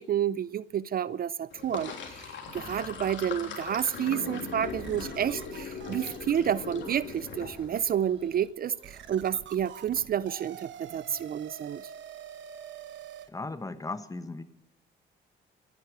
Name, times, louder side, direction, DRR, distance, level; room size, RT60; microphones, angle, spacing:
voice 1, 0.0-11.8, right 9 dB, 50° right, 0.5 m, -30 dB
Sink (filling or washing), 1.5-7.8, left 6 dB, 70° left, 3.2 m, -39 dB
sound 1, 2.5-3.6 4.2-4.3 4.8-13.3, right 9 dB, 70° right, 1.1 m, -47 dB
Alarm, 3.6-9.2, right 4 dB, 25° right, 2.2 m, -57 dB
voice 2, 13.3-14.4, left 3 dB, 15° left, 1.2 m, -36 dB
15.0 x 11.0 x 8.0 m
cardioid pair, 90°, 20 cm